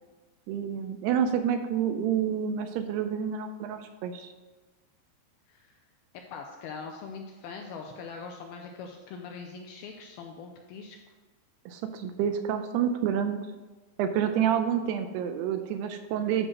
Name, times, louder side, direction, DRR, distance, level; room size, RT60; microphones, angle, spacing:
voice 1, 0.5-4.3 11.7-13.4 14.0-16.5, right 8 dB, 80° right, 8 dB, 2.5 m, -28 dB
voice 2, 6.3-11.0, left 5 dB, 85° left, 3 dB, 2.2 m, -42 dB
10.0 x 3.9 x 6.1 m, 1.3 s
omnidirectional pair, 4.9 m